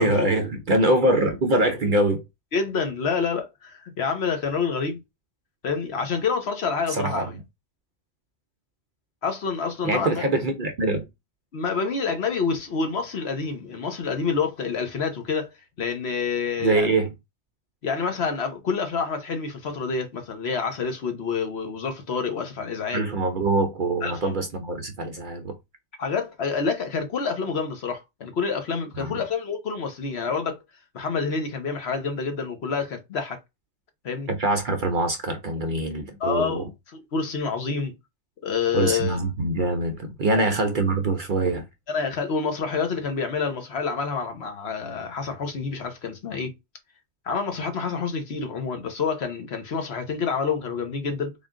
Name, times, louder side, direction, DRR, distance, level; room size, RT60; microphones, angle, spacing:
voice 1, 0.0-2.2 6.9-7.3 9.8-11.1 16.6-17.1 22.9-25.6 29.0-29.2 34.3-36.6 38.7-41.7, right 2 dB, 50° right, 0.7 m, -24 dB
voice 2, 2.5-5.0 5.6-7.3 9.2-10.3 11.5-15.5 15.8-17.0 17.8-23.1 24.0-24.3 26.0-30.6 30.9-33.4 34.0-34.3 36.2-36.7 37.1-37.9 38.4-39.2 41.9-46.5 47.3-51.3, left 5 dB, 60° left, 1.1 m, -28 dB
3.7 x 2.5 x 3.5 m
omnidirectional pair, 1.3 m